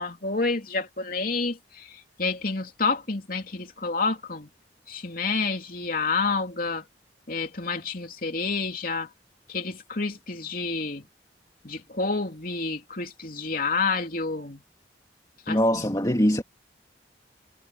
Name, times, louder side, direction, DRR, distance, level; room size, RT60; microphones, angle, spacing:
voice 1, 0.0-4.5 4.9-6.9 7.3-9.1 9.5-11.1 11.6-14.6 15.5-16.0, left 4 dB, 50° left, 3.1 m, -29 dB
voice 2, 15.5-16.4, equal, 20° left, 2.5 m, -22 dB
head